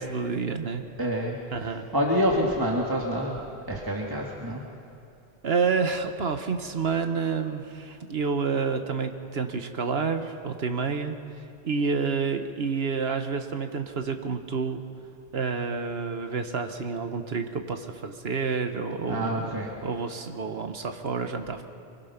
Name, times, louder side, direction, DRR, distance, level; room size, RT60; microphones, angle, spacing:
voice 1, 0.0-0.8 1.5-1.9 5.4-14.8 15.3-19.5 19.8-21.6, right 5 dB, 75° right, 7 dB, 1.5 m, -29 dB
voice 2, 1.0-3.4 3.7-4.6 19.1-19.7, equal, 20° right, -2 dB, 1.9 m, -27 dB
24.0 x 20.5 x 5.9 m, 2.5 s
omnidirectional pair, 1.0 m